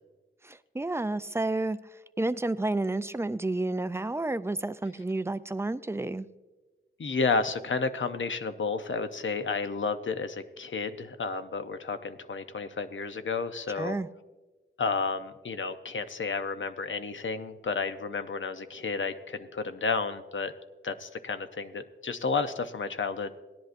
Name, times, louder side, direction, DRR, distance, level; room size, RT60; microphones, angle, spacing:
voice 1, 0.4-1.8 2.2-6.3 13.8-14.1, right 2 dB, 10° right, 14 dB, 0.3 m, -30 dB
voice 2, 7.0-14.0 14.8-20.5 20.8-23.4, left 4 dB, 65° left, 9 dB, 0.6 m, -31 dB
17.0 x 10.5 x 2.5 m, 1.2 s
wide cardioid pair, 95°, 21 cm